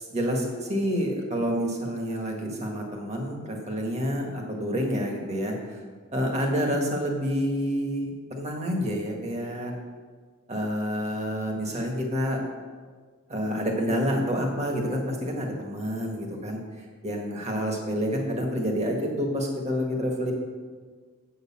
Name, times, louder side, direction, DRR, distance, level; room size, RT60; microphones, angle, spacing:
voice 1, 0.1-5.8 6.1-9.7 10.5-12.4 13.3-20.3, equal, 30° right, 1 dB, 1.7 m, -28 dB
8.0 x 6.6 x 7.5 m, 1.5 s
head